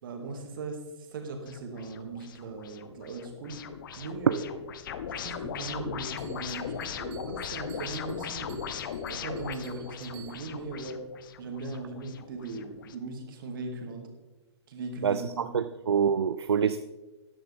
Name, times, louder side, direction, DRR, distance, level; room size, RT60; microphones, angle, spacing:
voice 1, 0.0-3.6 4.0-4.5 5.2-8.7 9.1-11.0 11.4-14.1 14.7-15.7, right 3 dB, 50° right, 4 dB, 2.2 m, -38 dB
sound 1, 1.5-13.0, left 7 dB, 50° left, 0.8 m, -39 dB
Bell, 6.2-10.7, right 10 dB, 30° right, 1.5 m, -55 dB
voice 2, 15.0-16.8, right 7 dB, 65° right, 12 dB, 0.5 m, -26 dB
13.5 x 10.5 x 3.5 m, 1.1 s
figure-of-eight pair, 115°, 15 cm